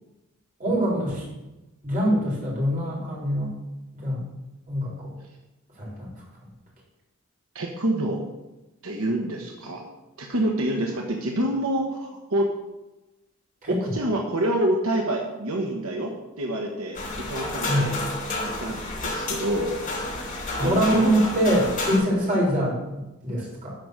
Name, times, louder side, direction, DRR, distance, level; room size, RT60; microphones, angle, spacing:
voice 1, 0.6-1.2 1.8-3.5 3.9-4.2 4.7-5.1 5.8-6.1 13.6-14.0 17.7-17.9 20.6-23.7, equal, 40° right, -5 dB, 3.7 m, -24 dB
voice 2, 7.5-8.2 8.8-9.8 10.2-12.5 13.7-17.0 17.3-18.0 18.6-20.0 20.6-21.1, right 1 dB, 80° right, 1 dB, 1.2 m, -27 dB
sound 1, 16.9-22.0, left 2 dB, 35° left, 4.2 m, -30 dB
12.0 x 4.8 x 6.4 m, 1.0 s
head